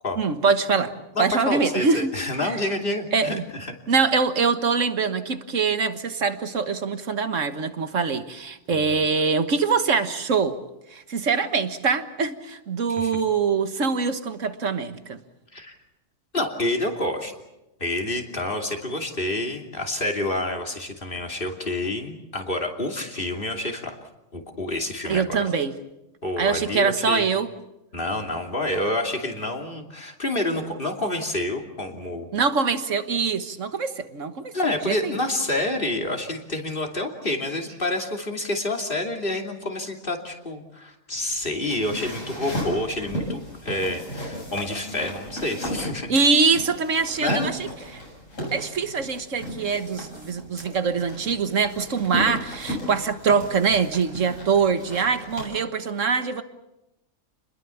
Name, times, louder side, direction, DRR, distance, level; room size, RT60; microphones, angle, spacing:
voice 1, 0.2-2.1 2.4-2.5 3.1-3.4 3.9-10.6 10.9-15.2 25.1-25.7 26.4-27.5 32.3-34.5 34.9-35.2 46.1-47.7 48.5-56.4, right 5 dB, 65° right, 1.8 m, -23 dB
voice 2, 1.1-3.7 8.7-9.0 12.9-13.1 15.5-15.8 16.3-17.3 17.8-24.0 24.3-25.5 26.2-27.3 27.9-32.3 34.5-46.3 47.2-47.5, left 1 dB, 40° left, 3.1 m, -28 dB
sound 1, 41.1-55.5, equal, 70° left, 8.0 m, -35 dB
29.5 x 21.5 x 7.1 m
omnidirectional pair, 1.4 m